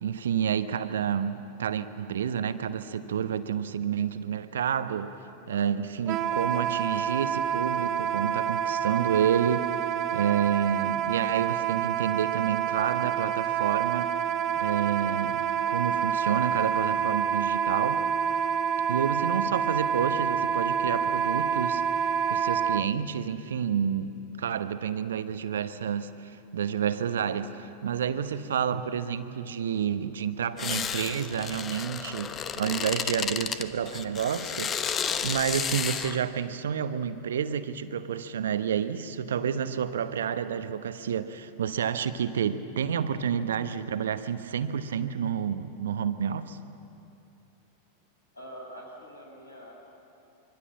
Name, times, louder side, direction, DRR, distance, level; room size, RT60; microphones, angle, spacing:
voice 1, 0.0-5.1 5.5-9.7 10.1-14.1 14.6-18.1 18.9-21.8 22.3-34.8 35.2-46.6, right 8 dB, 65° right, 1.0 m, -29 dB
Wind instrument woodwind instrument, 6.1-22.8, right 8 dB, 35° right, 0.8 m, -28 dB
sound 1, 30.6-36.2, left 7 dB, 25° left, 1.0 m, -32 dB
voice 2, 48.3-49.7, equal, 80° left, 6.5 m, -44 dB
25.5 x 24.0 x 7.4 m
figure-of-eight pair, 90°, 0 cm